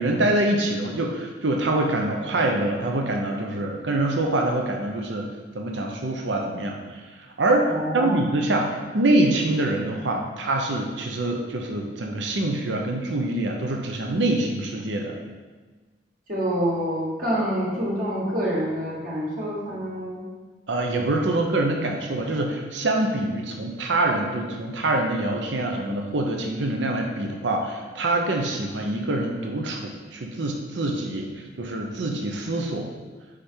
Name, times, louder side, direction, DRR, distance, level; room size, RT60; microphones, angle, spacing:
voice 1, 0.0-5.3 5.5-7.0 7.4-8.7 8.9-15.1 20.7-32.9, right 2 dB, 90° right, 2 dB, 0.7 m, -25 dB
voice 2, 7.7-8.2 16.3-20.2, equal, 50° right, -5 dB, 1.5 m, -27 dB
5.1 x 5.0 x 4.4 m, 1.3 s
head